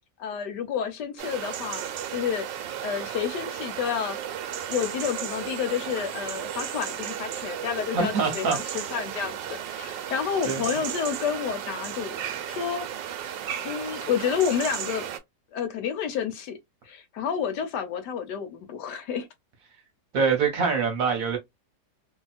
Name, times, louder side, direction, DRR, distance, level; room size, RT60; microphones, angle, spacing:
voice 1, 0.2-1.8 2.1-2.5 2.8-4.2 4.7-12.2 12.4-12.9 13.6-15.0 15.5-16.6 16.8-19.3, left 7 dB, 75° left, 1.2 m, -30 dB
sound 1, 1.2-15.2, right 9 dB, 90° right, 1.3 m, -34 dB
voice 2, 7.9-8.8 10.4-10.8 20.1-21.4, right 5 dB, 55° right, 1.1 m, -25 dB
2.8 x 2.7 x 2.3 m
omnidirectional pair, 1.9 m